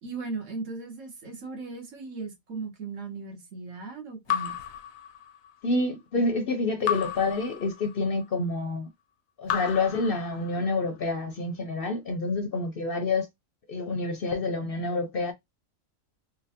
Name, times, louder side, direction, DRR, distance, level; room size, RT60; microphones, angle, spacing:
voice 1, 0.0-4.6, right 4 dB, 70° right, 1.3 m, -37 dB
Raindrop / Drip, 4.3-5.7 6.8-8.2 9.4-10.8, left 9 dB, 80° left, 1.0 m, -33 dB
voice 2, 5.6-8.9 9.4-13.3 13.7-15.3, left 3 dB, 55° left, 0.7 m, -28 dB
3.7 x 2.1 x 2.7 m
omnidirectional pair, 1.4 m